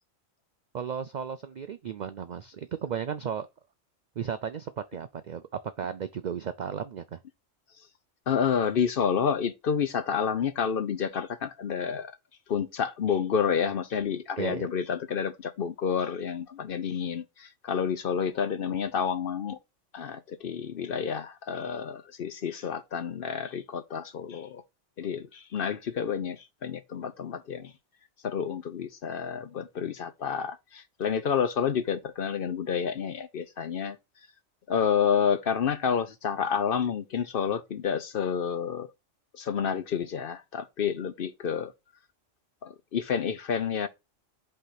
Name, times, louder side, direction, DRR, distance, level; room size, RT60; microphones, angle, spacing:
voice 1, 0.7-3.5 4.2-5.4 5.8-7.2 14.4-14.7, right 7 dB, 70° right, 0.4 m, -34 dB
voice 2, 8.3-12.1 12.5-19.6 19.9-24.6 25.0-27.7 28.2-34.0 34.7-38.9 39.4-41.7 42.6-43.9, left 7 dB, 55° left, 0.7 m, -29 dB
5.5 x 3.4 x 5.7 m
omnidirectional pair, 1.3 m